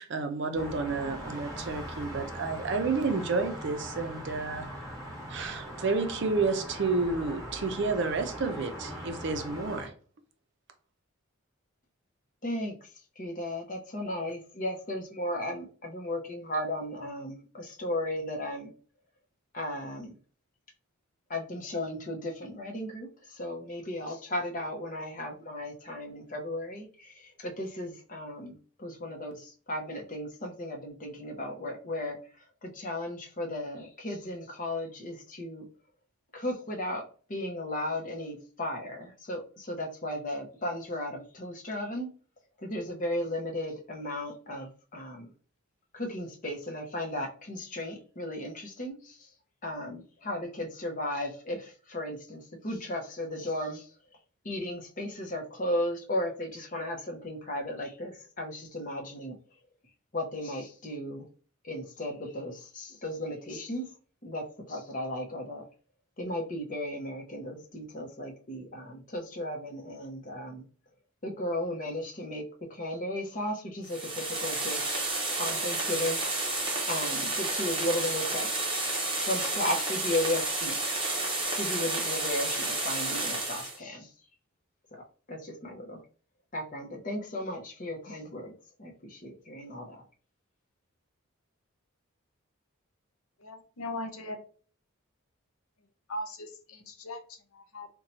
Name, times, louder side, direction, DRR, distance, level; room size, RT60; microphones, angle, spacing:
voice 1, 0.0-4.7 5.3-9.9, right 4 dB, 55° right, 0.5 m, -30 dB
sound 1, 0.5-9.9, equal, 15° left, 1.0 m, -40 dB
voice 2, 12.4-12.8 13.2-18.7 19.5-20.2 21.3-32.2 32.6-35.6 36.3-42.1 42.6-45.3 45.9-49.3 49.6-53.9 54.4-59.4 60.1-61.2 61.6-63.9 64.2-65.6 66.2-70.7 71.2-76.2 76.9-78.5 79.2-80.9 81.5-84.1 84.9-85.0 85.3-86.0 86.5-88.5 88.8-90.0, left 1 dB, 35° left, 0.7 m, -35 dB
sound 2, 73.8-83.8, right 2 dB, 25° right, 0.8 m, -31 dB
voice 3, 93.4-94.4 96.1-97.9, left 1 dB, 75° left, 0.7 m, -39 dB
2.7 x 2.2 x 4.1 m
head